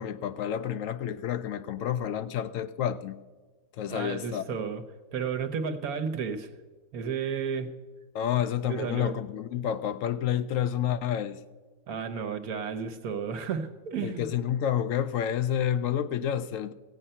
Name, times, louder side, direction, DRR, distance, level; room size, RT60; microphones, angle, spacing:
voice 1, 0.0-3.2 3.8-4.4 8.1-11.4 14.0-16.7, left 9 dB, 70° left, 0.9 m, -29 dB
voice 2, 3.9-4.8 5.1-6.5 6.9-7.7 8.6-9.1 11.9-14.3, right 6 dB, 85° right, 1.4 m, -32 dB
15.0 x 8.9 x 5.5 m
omnidirectional pair, 1.5 m